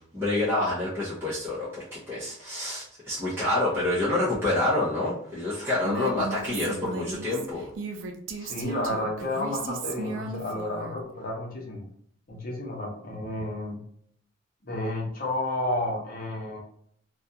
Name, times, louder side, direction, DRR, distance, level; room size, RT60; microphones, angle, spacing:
voice 1, 0.1-7.7, left 2 dB, 15° right, -10 dB, 0.7 m, -27 dB
Female speech woman speaking, 5.8-11.0, right 3 dB, 85° right, 0.4 m, -36 dB
voice 2, 8.4-11.9 12.3-13.8 14.6-16.6, left 1 dB, 50° left, -2 dB, 0.8 m, -31 dB
2.4 x 2.3 x 2.7 m, 0.66 s
head